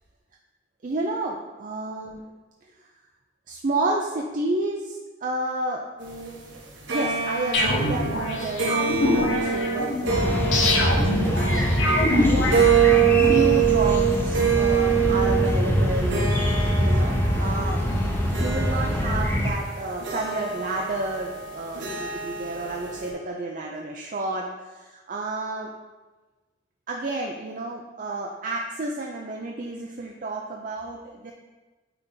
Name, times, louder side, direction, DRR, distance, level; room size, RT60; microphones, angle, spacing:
voice 1, 0.8-2.2 3.5-5.8 6.9-16.3 16.8-17.8 18.3-25.7 26.9-31.3, right 2 dB, 45° right, 0 dB, 0.5 m, -31 dB
sound 1, 6.0-23.1, right 7 dB, 85° right, 1.3 m, -25 dB
sound 2, 7.5-13.3, left 1 dB, 90° left, 1.1 m, -25 dB
sound 3, 10.1-19.5, equal, 10° left, 0.7 m, -24 dB
8.9 x 3.4 x 3.9 m, 1.2 s
head